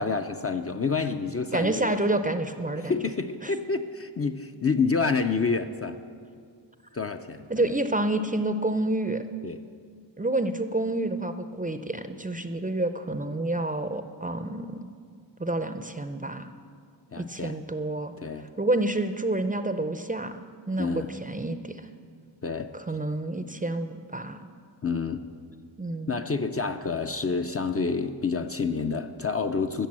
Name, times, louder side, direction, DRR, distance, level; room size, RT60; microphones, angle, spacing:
voice 1, 0.0-2.0 2.7-6.0 6.9-7.5 9.4-9.6 17.1-17.6 18.2-18.5 20.8-21.1 22.4-22.8 24.8-25.3 26.1-29.9, left 4 dB, 30° left, 7 dB, 0.5 m, -28 dB
voice 2, 1.5-2.9 3.4-3.5 7.5-9.2 10.2-14.9 15.4-16.5 17.2-18.1 18.6-21.9 22.7-24.5 25.8-26.2, right 2 dB, 20° right, 9 dB, 0.5 m, -29 dB
14.5 x 6.7 x 7.6 m, 2.2 s
wide cardioid pair, 95°, 47 cm